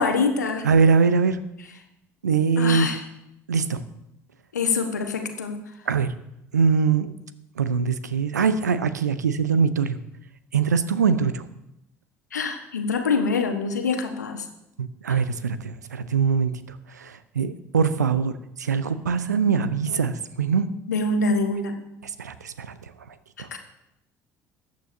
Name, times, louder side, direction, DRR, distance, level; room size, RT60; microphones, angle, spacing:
voice 1, 0.0-0.7 2.6-3.0 4.5-5.6 12.3-14.4 20.9-21.7 23.5-23.6, left 4 dB, 80° left, 6 dB, 1.2 m, -25 dB
voice 2, 0.6-1.4 2.2-2.9 3.5-3.8 5.9-6.1 6.5-7.1 7.6-10.0 10.5-11.4 14.8-16.5 17.0-18.3 18.6-20.7 22.2-22.7 23.4-23.5, right 5 dB, 80° right, 14 dB, 0.7 m, -22 dB
20.5 x 9.5 x 2.8 m, 0.83 s
figure-of-eight pair, 55°, 9 cm